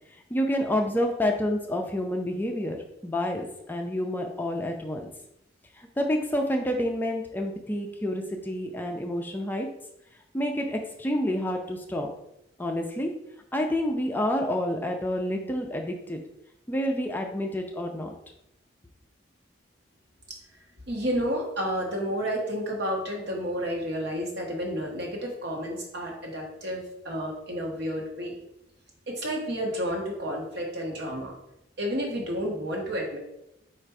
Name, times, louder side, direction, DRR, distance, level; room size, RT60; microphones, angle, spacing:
voice 1, 0.3-5.1 5.8-9.7 10.3-12.1 12.6-13.1 13.5-16.2 16.7-18.1, left 1 dB, 10° left, 2 dB, 0.3 m, -28 dB
voice 2, 20.9-28.4 29.1-31.3 31.8-33.2, equal, 60° right, 0 dB, 1.0 m, -31 dB
4.4 x 2.4 x 4.6 m, 0.84 s
head